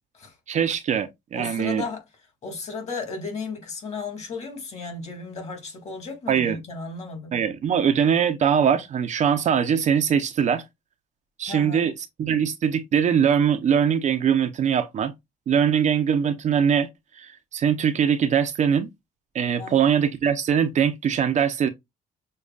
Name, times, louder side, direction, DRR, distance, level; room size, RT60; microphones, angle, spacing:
voice 1, 0.5-1.8 6.3-6.6 7.3-10.6 11.4-11.9 12.2-15.1 15.5-16.9 17.1-18.9 19.3-21.7, right 8 dB, 45° right, 0.6 m, -22 dB
voice 2, 1.3-2.0 2.4-7.4 11.5-11.9 19.6-19.9, left 4 dB, 40° left, 2.1 m, -34 dB
6.5 x 2.3 x 2.3 m
cardioid pair, 110°, 17 cm